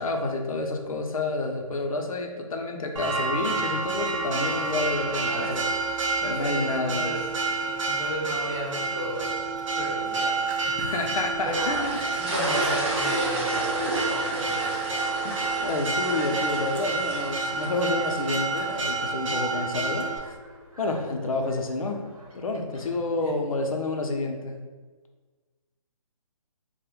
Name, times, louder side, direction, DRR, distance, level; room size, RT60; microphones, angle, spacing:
voice 1, 0.0-5.6 6.0-7.1 10.8-12.0 15.2-20.1 20.8-22.0 22.3-24.6, left 2 dB, 80° left, 3 dB, 0.5 m, -29 dB
Church bell, 3.0-20.2, right 3 dB, 65° right, 0.5 m, -29 dB
voice 2, 5.2-5.6 6.2-7.2 7.8-9.2 9.7-10.4 10.7-10.8 11.4-11.5 12.2-14.8 22.7-22.8 23.2-23.3, equal, 10° right, -6 dB, 0.3 m, -34 dB
sound 1, 11.4-18.7, right 1 dB, 40° right, 0.8 m, -32 dB
sound 2, 12.1-22.9, right 1 dB, 85° right, 0.8 m, -46 dB
2.2 x 2.0 x 3.0 m, 1.4 s
figure-of-eight pair, 145°, 18 cm